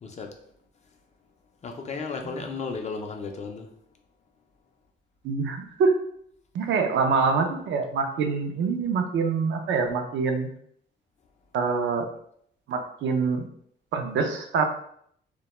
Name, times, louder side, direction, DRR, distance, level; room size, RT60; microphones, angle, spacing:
voice 1, 0.0-0.3 1.6-3.7, left 4 dB, 35° left, 4 dB, 0.4 m, -34 dB
voice 2, 5.2-5.9 6.5-10.5 11.5-12.1 12.7-13.5 13.9-14.7, right 5 dB, 70° right, 4 dB, 0.4 m, -25 dB
2.2 x 2.1 x 2.9 m, 0.67 s
cardioid pair, 90°, 20 cm